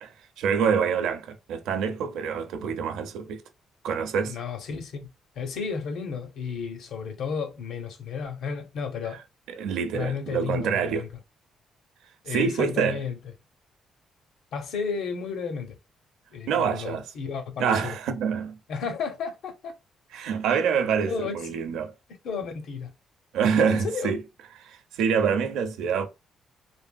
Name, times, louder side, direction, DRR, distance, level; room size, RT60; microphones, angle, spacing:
voice 1, 0.0-3.4 3.8-4.4 9.5-11.1 12.3-13.0 16.5-17.0 17.6-18.6 20.1-21.9 23.3-24.2 24.6-26.1, right 6 dB, 85° right, 0.6 m, -26 dB
voice 2, 4.2-5.1 5.4-9.2 9.9-11.1 12.2-13.2 14.5-15.8 16.3-17.9 18.7-19.7 21.1-21.6 22.2-22.9 23.6-24.1 25.1-25.2, left 5 dB, 80° left, 0.8 m, -32 dB
3.3 x 2.6 x 2.2 m
cardioid pair, 90°, 0 cm